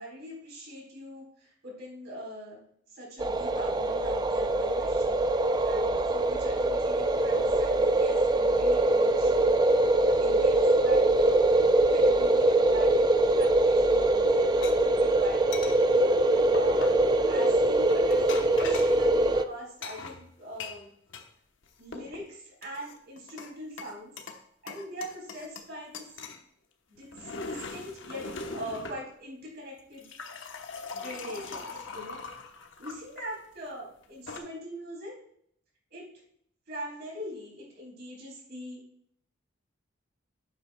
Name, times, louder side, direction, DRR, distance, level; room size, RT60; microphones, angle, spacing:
voice 1, 0.0-2.6 2.9-9.6 9.9-11.6 11.9-13.1 13.4-14.5 14.8-16.0 16.3-16.9 17.2-20.9 21.8-24.1 24.6-26.1 26.9-30.1 30.9-32.3 32.8-35.2 35.9-36.1 36.7-38.8, equal, 55° right, -3 dB, 4.0 m, -42 dB
sound 1, 3.2-19.4, right 2 dB, 20° right, 0.4 m, -23 dB
sound 2, 14.6-14.7 15.5-15.8 16.5-17.1 17.9-19.0 19.8-21.3 21.6-22.2 22.6-23.5 23.8-24.4 24.7-25.7 25.9-26.4 27.0-29.0 29.8-33.3 34.0-34.4, left 4 dB, 70° left, 1.0 m, -40 dB
11.5 x 8.5 x 2.3 m, 0.67 s
head